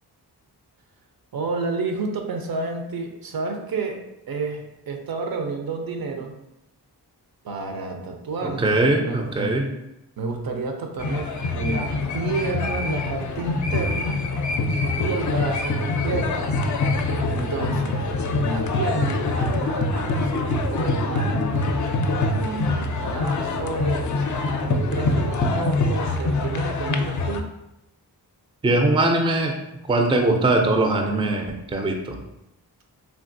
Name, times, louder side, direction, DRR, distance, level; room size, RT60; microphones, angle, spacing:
voice 1, 1.3-6.4 7.4-8.8 9.0-9.6 10.2-14.2 15.0-16.5 17.3-18.0 18.4-21.6 22.3-24.2 24.6-27.5, right 3 dB, 60° right, 4 dB, 0.6 m, -30 dB
voice 2, 8.4-9.7 28.6-29.5 29.9-32.2, right 2 dB, 15° right, 3 dB, 0.4 m, -21 dB
sound 1, 11.0-27.4, left 2 dB, 50° left, 0.4 m, -24 dB
3.4 x 2.3 x 2.6 m, 0.89 s
cardioid pair, 55°, 40 cm